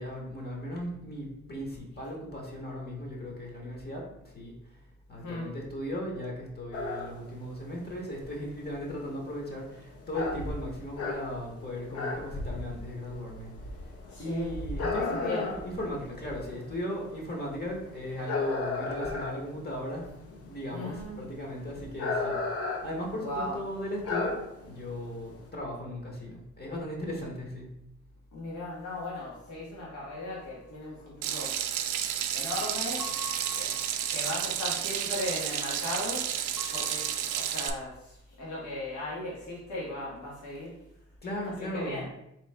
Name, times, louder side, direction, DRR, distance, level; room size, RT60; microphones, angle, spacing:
voice 1, 0.0-4.0 4.3-4.5 5.1-13.5 14.2-22.4 22.8-24.3 24.6-27.7 36.8-36.9 41.2-42.0, left 1 dB, 30° left, -1 dB, 1.1 m, -37 dB
sound 1, 6.7-25.5, left 3 dB, 50° left, 0.7 m, -36 dB
voice 2, 14.1-14.6 15.1-15.5 20.7-21.3 23.1-23.6 28.3-31.9 32.3-33.2 33.5-33.7 34.1-36.3 36.7-40.8 41.7-42.0, left 1 dB, 75° left, -6 dB, 1.4 m, -37 dB
sound 2, 30.1-30.5 33.0-34.6 36.6-37.7, left 5 dB, 10° right, 0.5 m, -46 dB
Water tap faucet / Sink (filling or washing), 31.2-37.7, right 10 dB, 80° right, 0.4 m, -31 dB
3.4 x 3.1 x 3.3 m, 0.82 s
cardioid pair, 90°, 30 cm